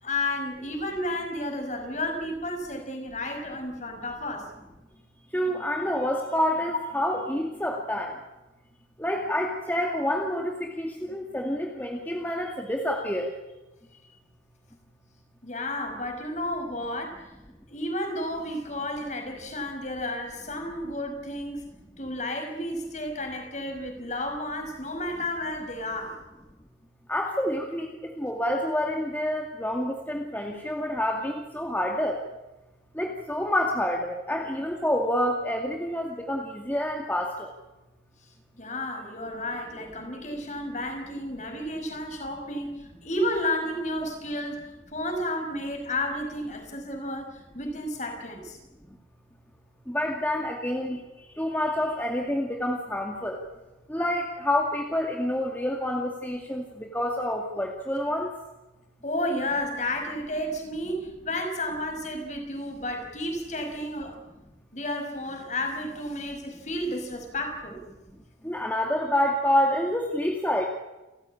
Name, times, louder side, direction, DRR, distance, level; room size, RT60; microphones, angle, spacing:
voice 1, 0.0-4.5 15.4-17.2 17.7-21.7 22.0-26.2 38.6-44.6 44.9-48.6 59.0-64.2 64.7-67.8, left 1 dB, 40° left, 5 dB, 5.5 m, -32 dB
voice 2, 5.3-8.1 9.0-13.3 27.1-32.2 33.0-37.5 49.9-51.0 51.4-53.4 53.9-58.3 68.4-70.7, left 1 dB, 10° left, 1 dB, 2.3 m, -28 dB
30.0 x 15.0 x 8.8 m, 1.0 s
head